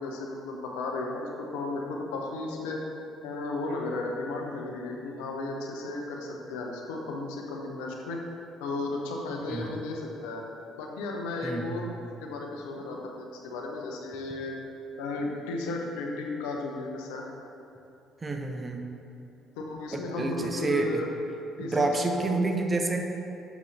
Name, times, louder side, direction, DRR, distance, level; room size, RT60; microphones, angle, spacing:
voice 1, 0.0-2.8 3.2-8.2 8.6-10.4 10.8-11.9 12.2-14.5 15.0-17.2 19.6-21.1 21.6-22.4, left 2 dB, 75° left, 0 dB, 0.7 m, -34 dB
voice 2, 11.4-11.9 18.2-18.9 19.9-21.0 21.6-23.0, right 3 dB, 25° right, 3 dB, 0.7 m, -29 dB
7.0 x 5.4 x 3.2 m, 2.9 s
hypercardioid pair, 50°, 0 cm